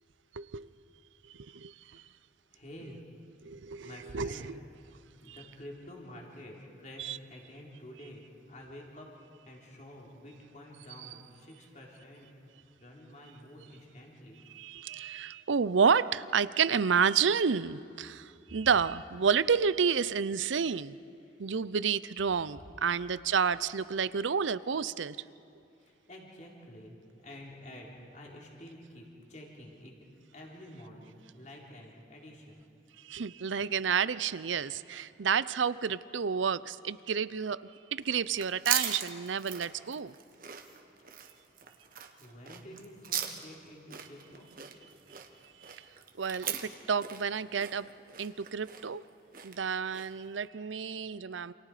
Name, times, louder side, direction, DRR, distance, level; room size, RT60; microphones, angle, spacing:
voice 1, 0.3-0.7 1.3-2.0 3.4-4.6 5.3-5.4 7.0-7.2 11.0-11.1 14.5-21.0 21.4-25.2 33.0-40.1 45.6-45.9 46.2-47.9 48.2-49.0 49.4-51.5, right 6 dB, 85° right, 17 dB, 0.6 m, -30 dB
voice 2, 1.7-2.0 2.5-3.0 3.8-4.6 5.2-9.1 9.5-12.3 12.8-14.4 21.3-21.4 25.8-29.9 30.3-32.6 42.2-44.5, left 1 dB, 40° left, -1 dB, 3.7 m, -49 dB
sound 1, 38.0-50.3, right 9 dB, 50° right, 1.6 m, -39 dB
28.5 x 27.5 x 5.0 m, 2.8 s
head